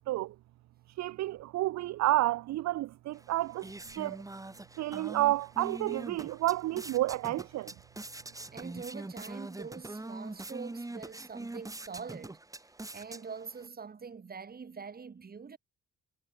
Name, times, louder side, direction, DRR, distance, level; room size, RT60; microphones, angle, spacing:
voice 1, 1.0-3.7 4.0-4.2 4.8-7.7, right 16 dB, 65° right, 0.5 m, -30 dB
sound 1, 3.1-13.7, right 2 dB, 10° right, 1.6 m, -44 dB
voice 2, 8.5-12.4 12.9-15.6, right 5 dB, 30° right, 1.6 m, -44 dB
cardioid pair, 90°, 30 cm